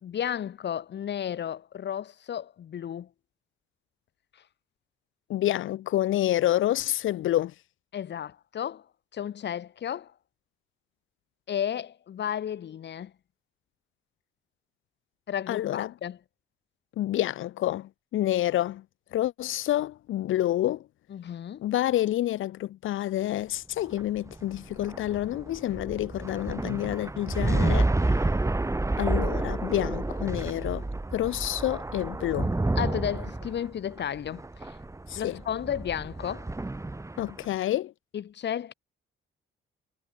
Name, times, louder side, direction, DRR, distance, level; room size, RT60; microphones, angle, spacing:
voice 1, 0.0-3.1 7.9-8.8 9.1-10.1 11.5-13.1 15.3-16.2 21.1-21.6 32.8-34.8 35.1-36.5 38.1-38.7, left 9 dB, 60° left, 4.7 m, -33 dB
voice 2, 5.3-7.5 15.5-15.9 17.0-18.8 19.1-20.8 21.6-27.9 29.0-30.8 31.1-32.6 35.1-35.4 37.2-37.9, left 13 dB, 80° left, 5.4 m, -28 dB
sound 1, 23.8-37.4, right 2 dB, 15° right, 5.0 m, -29 dB
cardioid pair, 90°, 20 cm